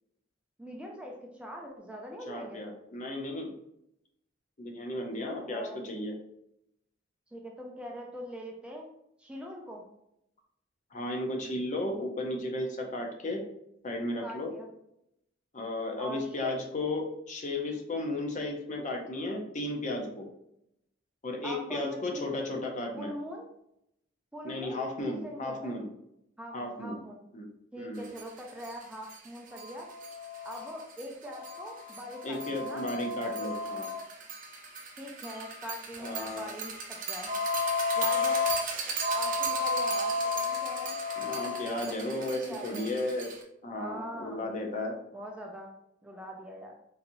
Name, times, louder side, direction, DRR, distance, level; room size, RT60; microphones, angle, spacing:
voice 1, 0.6-2.6 5.2-5.8 7.3-8.9 9.2-9.8 14.2-14.7 16.0-16.5 21.4-22.3 22.9-23.5 24.3-25.8 26.4-27.2 27.7-29.9 30.4-32.8 33.2-33.5 35.0-37.3 38.0-38.4 39.1-41.0 41.8-42.9 43.7-44.5 45.1-45.7 46.0-46.7, equal, 5° right, 0 dB, 0.4 m, -42 dB
voice 2, 2.3-3.5 4.6-6.1 10.9-13.4 13.8-14.5 15.5-20.3 21.2-23.1 24.4-25.9 26.5-27.0 27.3-27.5 27.8-28.0 32.2-33.9 36.0-36.6 41.2-43.3 43.6-45.0, left 1 dB, 40° left, 2 dB, 0.7 m, -34 dB
sound 1, 28.2-28.3 28.6-28.7 29.1-29.2 29.5-43.4, left 2 dB, 45° right, 0.6 m, -33 dB
3.9 x 2.9 x 2.6 m, 0.78 s
head